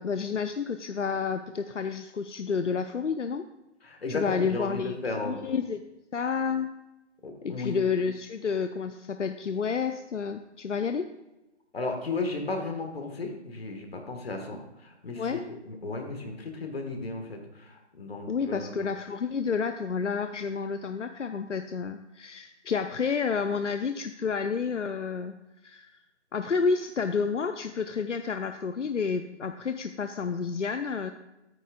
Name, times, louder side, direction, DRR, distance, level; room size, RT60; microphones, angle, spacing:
voice 1, 0.0-3.5 4.1-5.8 6.1-6.7 7.4-11.1 15.2-15.4 18.3-25.3 25.6-25.9 26.3-31.1, left 5 dB, 85° left, 8 dB, 0.6 m, -30 dB
voice 2, 3.8-5.4 7.2-7.8 11.7-18.9, left 3 dB, 55° left, 4 dB, 1.8 m, -35 dB
13.0 x 9.1 x 2.5 m, 0.96 s
figure-of-eight pair, 155°, 35 cm